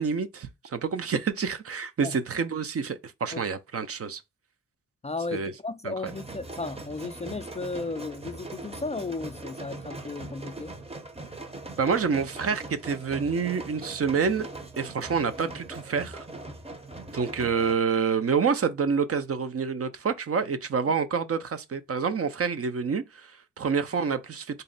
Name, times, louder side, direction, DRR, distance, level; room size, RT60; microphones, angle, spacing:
voice 1, 0.0-4.2 5.3-5.5 5.8-6.1 11.8-14.5 14.8-16.2 17.1-24.6, right 5 dB, 45° right, 0.6 m, -28 dB
voice 2, 5.0-10.8, left 3 dB, 20° left, 0.3 m, -34 dB
sound 1, 6.0-17.7, right 2 dB, 20° right, 0.8 m, -41 dB
3.9 x 2.1 x 3.9 m
cardioid pair, 70°, 32 cm